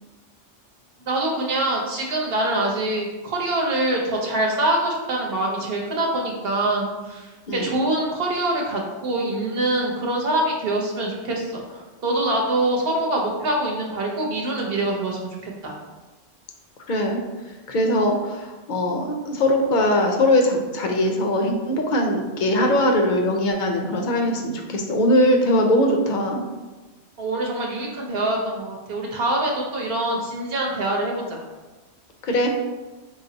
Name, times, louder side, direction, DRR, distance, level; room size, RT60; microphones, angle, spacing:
voice 1, 1.0-15.7 27.2-31.4, right 1 dB, 55° right, -1 dB, 0.9 m, -24 dB
voice 2, 16.9-17.2 17.7-26.4 32.2-32.5, left 1 dB, 55° left, 2 dB, 0.6 m, -21 dB
4.8 x 2.1 x 3.8 m, 1.2 s
omnidirectional pair, 1.3 m